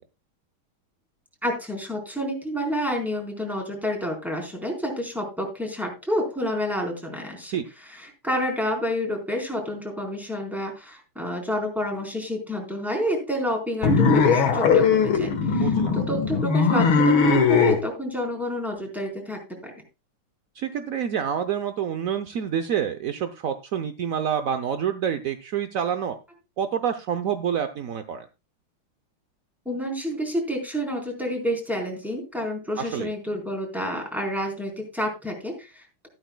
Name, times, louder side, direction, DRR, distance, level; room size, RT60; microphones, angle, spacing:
voice 1, 1.4-19.7 29.7-36.1, equal, ahead, 1 dB, 3.8 m, -29 dB
sound 1, 13.8-17.8, left 5 dB, 75° left, 2.2 m, -19 dB
voice 2, 15.5-15.9 20.6-26.2 26.6-28.2 32.8-33.1, right 8 dB, 70° right, 9 dB, 0.8 m, -27 dB
13.5 x 12.5 x 2.2 m, 0.26 s
omnidirectional pair, 2.3 m